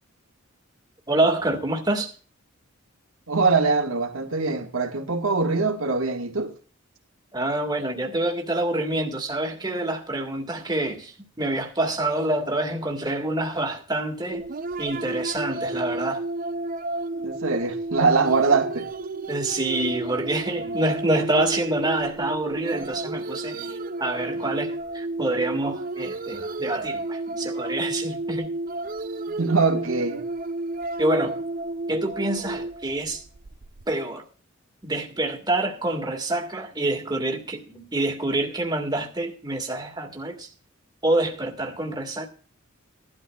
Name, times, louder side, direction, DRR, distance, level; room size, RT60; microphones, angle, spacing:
voice 1, 1.1-2.1 7.3-14.5 14.8-16.2 19.3-28.5 31.0-31.4 31.9-33.2 33.9-34.2 34.8-40.5 41.0-42.3, right 2 dB, 20° right, 1.8 m, -27 dB
voice 2, 3.3-6.5 17.2-18.9 29.4-30.2, right 4 dB, 75° right, 1.7 m, -22 dB
sound 1, 14.3-33.8, right 2 dB, 40° right, 0.6 m, -32 dB
17.5 x 12.0 x 2.3 m
head